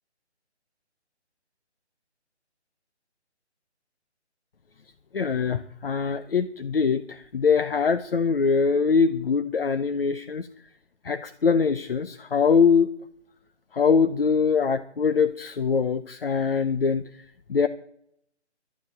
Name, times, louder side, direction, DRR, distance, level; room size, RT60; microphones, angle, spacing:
voice 1, 5.1-10.5 11.0-12.9 13.7-17.7, left 5 dB, 55° left, 11 dB, 0.9 m, -23 dB
12.0 x 9.4 x 8.6 m, 0.68 s
figure-of-eight pair, 155°, 35 cm